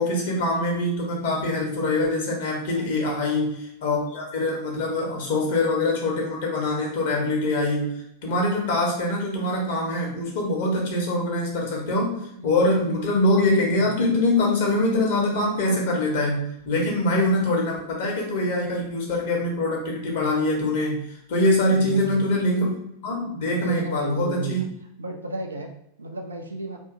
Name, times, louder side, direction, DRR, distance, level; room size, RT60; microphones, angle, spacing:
voice 1, 0.0-12.2 12.4-22.7 23.0-24.6, left 1 dB, 55° left, -1 dB, 0.9 m, -24 dB
voice 2, 2.7-3.5 11.5-11.7 12.4-13.0 13.8-14.1 15.5-16.2 16.7-16.9 21.7-22.3 23.5-24.7 25.0-26.8, right 2 dB, 75° right, 3 dB, 0.4 m, -34 dB
2.7 x 2.6 x 2.5 m, 0.77 s
figure-of-eight pair, 90°, 0 cm